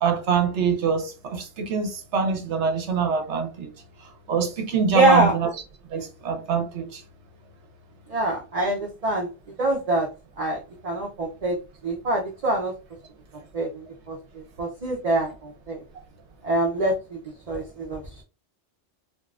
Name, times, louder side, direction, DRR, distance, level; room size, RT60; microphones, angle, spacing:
voice 1, 0.0-3.7 4.3-5.5 5.9-7.0, right 6 dB, 65° right, 1.0 m, -24 dB
voice 2, 4.9-5.3 8.1-9.3 9.6-10.1 10.4-11.6 11.8-12.7 13.5-13.7 14.1-14.2 14.6-15.8 16.4-17.2 17.5-18.2, right 2 dB, 40° right, 0.6 m, -24 dB
3.5 x 2.3 x 2.3 m
omnidirectional pair, 1.3 m